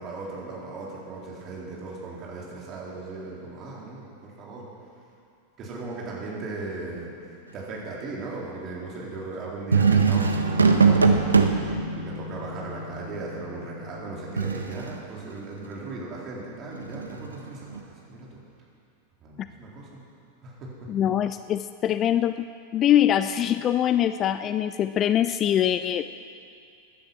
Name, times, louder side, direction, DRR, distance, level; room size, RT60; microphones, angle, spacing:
voice 1, 0.0-4.7 5.6-11.1 12.0-18.4 19.2-20.0 20.4-20.9, right 3 dB, 30° right, -4 dB, 3.8 m, -37 dB
sound 1, 9.7-15.0 16.7-17.8, right 4 dB, 75° right, 0.9 m, -23 dB
voice 2, 20.9-22.5 22.7-26.0, left 10 dB, 30° left, 12 dB, 0.4 m, -23 dB
16.0 x 10.5 x 6.1 m, 2.5 s
figure-of-eight pair, 90°, 0 cm